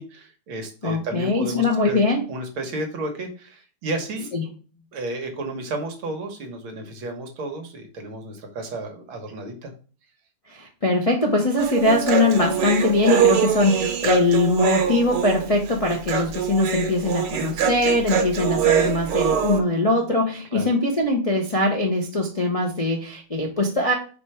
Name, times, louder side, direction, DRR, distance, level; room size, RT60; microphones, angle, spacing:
voice 1, 0.0-2.0 2.3-4.3 4.9-9.7 20.5-20.7, right 2 dB, 70° right, 4 dB, 2.0 m, -32 dB
voice 2, 0.8-2.3 4.3-4.4 10.5-24.0, left 2 dB, 45° left, -1 dB, 0.4 m, -22 dB
Human voice, 11.6-19.6, right 8 dB, 90° right, 2.0 m, -23 dB
5.1 x 4.4 x 4.9 m, 0.38 s
omnidirectional pair, 2.4 m